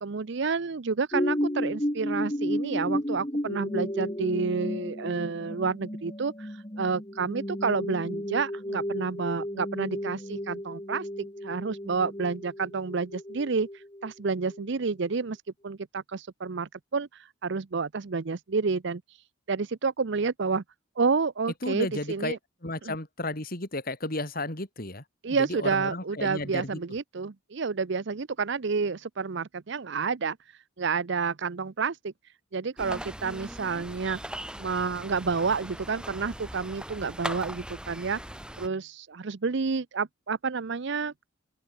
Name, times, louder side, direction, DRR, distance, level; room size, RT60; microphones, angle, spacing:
voice 1, 0.0-15.4 15.6-19.0 19.5-20.6 21.0-22.4 22.8-22.9 25.2-30.4 30.8-32.1 32.5-34.2 34.6-38.2 38.6-41.3, right 4 dB, 60° right, 0.6 m, -30 dB
sound 1, 1.1-14.7 15.2-15.3, equal, 20° left, 3.3 m, -33 dB
voice 2, 21.6-22.4 22.6-25.0 25.4-26.8, left 2 dB, 45° left, 4.0 m, -33 dB
sound 2, 32.8-38.7, right 1 dB, 5° right, 6.3 m, -40 dB
open air
head